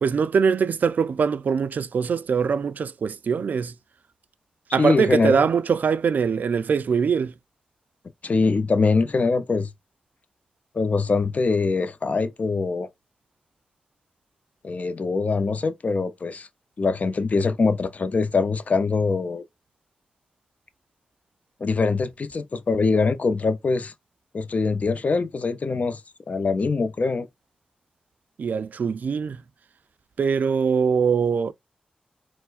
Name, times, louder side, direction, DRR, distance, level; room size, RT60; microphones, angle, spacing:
voice 1, 0.0-3.7 4.7-7.3 28.4-29.4 30.2-31.5, right 6 dB, 70° right, 0.3 m, -22 dB
voice 2, 4.8-5.5 8.2-9.7 10.7-12.9 14.6-16.5 16.8-19.4 21.6-23.9 24.3-26.0 26.3-27.3, left 4 dB, 55° left, 0.5 m, -23 dB
4.3 x 2.1 x 2.4 m
cardioid pair, 45°, 3 cm